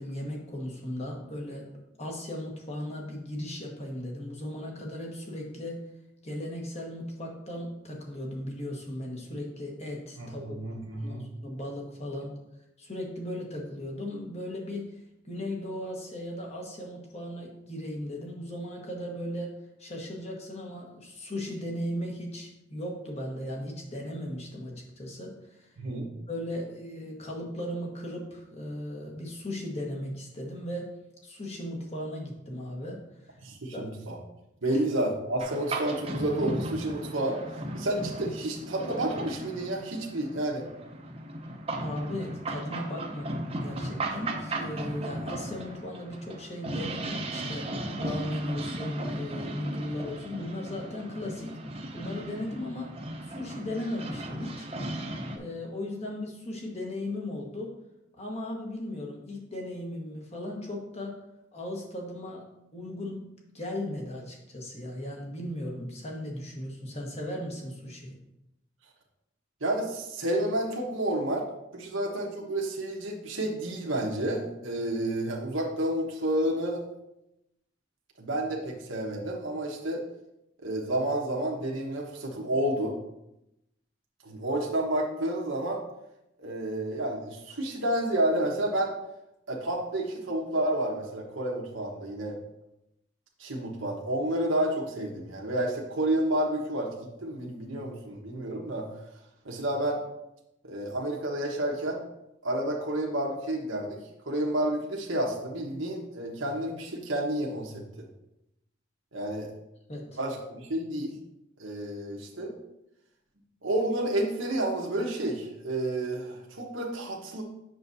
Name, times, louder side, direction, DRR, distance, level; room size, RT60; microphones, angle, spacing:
voice 1, 0.0-1.7 2.0-5.8 6.2-10.6 11.0-12.4 12.8-15.0 15.3-19.5 19.8-25.7 26.3-30.9 31.2-33.4 33.7-33.9 34.7-34.8 41.8-51.6 51.9-52.9 53.2-54.7 55.3-57.7 58.1-61.2 61.5-62.4 62.7-63.2 63.5-68.2 109.9-110.2, left 1 dB, 35° left, -1 dB, 1.4 m, -37 dB
voice 2, 10.2-11.2 25.8-26.1 33.4-34.2 34.6-37.4 37.7-40.7 69.6-71.5 71.7-76.8 78.2-80.0 80.6-83.0 84.2-85.8 86.4-88.9 89.5-92.4 93.4-98.9 99.4-100.0 100.6-102.0 102.4-104.0 104.3-108.1 109.1-109.5 110.2-111.2 111.6-112.5 113.6-117.4, right 1 dB, 85° right, -1 dB, 1.2 m, -30 dB
sound 1, 35.4-55.4, right 1 dB, 30° right, 0.7 m, -36 dB
7.9 x 6.4 x 2.7 m, 0.86 s
head